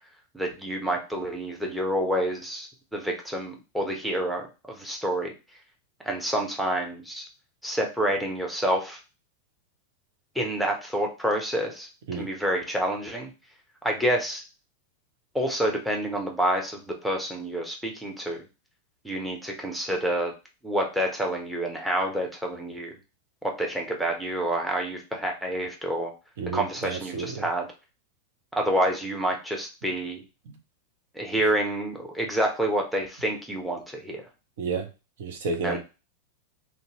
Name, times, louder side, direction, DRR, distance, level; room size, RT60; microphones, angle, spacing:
voice 1, 0.3-5.3 6.0-7.2 7.6-9.0 10.3-13.3 13.8-14.4 15.3-18.4 19.0-20.3 20.6-22.9 23.4-26.1 26.5-27.7 28.5-30.2 31.1-34.2 35.6-35.8, right 1 dB, ahead, 1 dB, 0.7 m, -28 dB
voice 2, 26.4-27.5 34.6-34.9 35.2-35.8, right 4 dB, 55° right, 5 dB, 0.5 m, -31 dB
2.6 x 2.1 x 2.8 m, 0.30 s
figure-of-eight pair, 90°, 0 cm